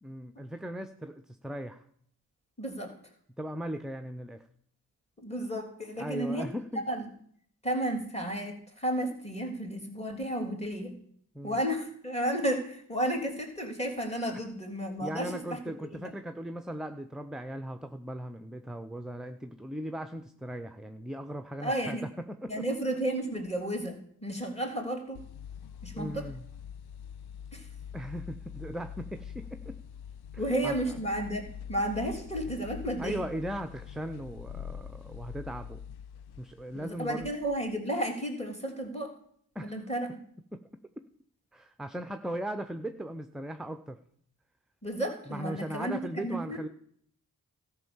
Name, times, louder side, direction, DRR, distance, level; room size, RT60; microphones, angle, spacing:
voice 1, 0.0-1.8 3.4-4.5 6.0-6.8 11.3-11.6 14.3-14.4 15.0-22.7 25.9-26.5 27.9-29.8 30.3-30.8 33.0-35.8 36.4-37.3 39.5-39.8 40.5-40.6 41.5-44.0 45.3-46.7, right 1 dB, ahead, 8 dB, 0.7 m, -38 dB
voice 2, 2.6-2.9 5.2-6.5 6.7-7.1 7.6-10.9 11.4-15.6 21.6-22.0 22.5-25.2 25.8-26.2 27.5-27.7 30.4-33.2 36.7-39.1 39.6-40.2 44.8-46.6, right 1 dB, 15° left, 3 dB, 3.4 m, -32 dB
sound 1, 25.1-37.8, left 8 dB, 75° left, 0.6 m, -44 dB
13.5 x 5.6 x 7.1 m, 0.64 s
supercardioid pair, 40°, 39 cm